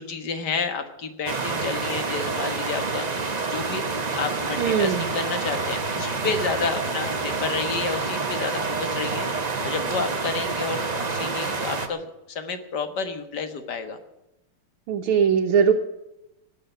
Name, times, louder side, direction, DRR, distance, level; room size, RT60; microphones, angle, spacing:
voice 1, 0.0-3.8 4.1-10.8 11.1-14.0, left 5 dB, 55° left, 8 dB, 1.9 m, -30 dB
sound 1, 1.3-11.9, right 4 dB, 40° right, 0.6 m, -28 dB
voice 2, 4.6-5.1 14.9-15.7, right 7 dB, 75° right, 2 dB, 1.8 m, -20 dB
17.5 x 6.8 x 10.0 m, 0.93 s
omnidirectional pair, 2.4 m